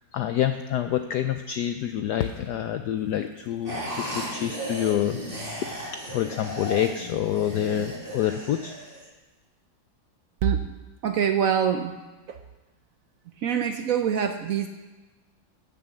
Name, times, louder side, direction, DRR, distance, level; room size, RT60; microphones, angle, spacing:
voice 1, 0.1-5.2 5.9-8.7, left 11 dB, 70° left, 8 dB, 1.0 m, -27 dB
sound 1, 3.7-9.1, equal, 25° right, 2.9 m, -35 dB
voice 2, 11.0-12.0 12.3-12.4 13.4-14.7, right 8 dB, 75° right, 7 dB, 0.7 m, -24 dB
11.0 x 7.0 x 7.7 m, 1.2 s
omnidirectional pair, 2.2 m